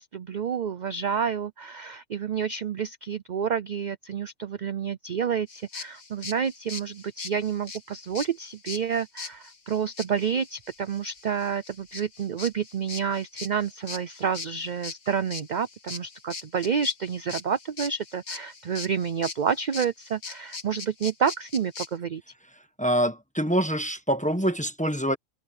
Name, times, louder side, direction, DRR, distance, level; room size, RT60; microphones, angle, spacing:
voice 1, 0.0-22.2, right 7 dB, 50° right, 0.5 m, -29 dB
sound 1, 5.5-21.9, left 4 dB, 90° left, 2.5 m, -40 dB
voice 2, 22.8-25.2, equal, 5° left, 1.1 m, -25 dB
omnidirectional pair, 1.4 m